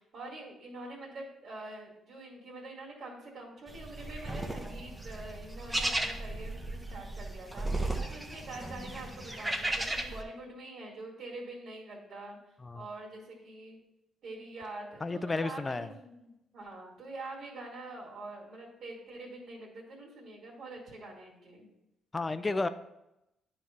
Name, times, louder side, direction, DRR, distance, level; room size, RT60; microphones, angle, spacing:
voice 1, 0.0-12.4 12.7-13.8 14.2-21.7, right 2 dB, 60° right, -4 dB, 2.2 m, -45 dB
sound 1, 3.7-10.2, right 1 dB, 10° right, 0.9 m, -35 dB
voice 2, 15.0-15.9 22.1-22.7, left 3 dB, 25° left, 12 dB, 0.4 m, -32 dB
9.4 x 3.2 x 5.6 m, 0.88 s
cardioid pair, 90°, 0 cm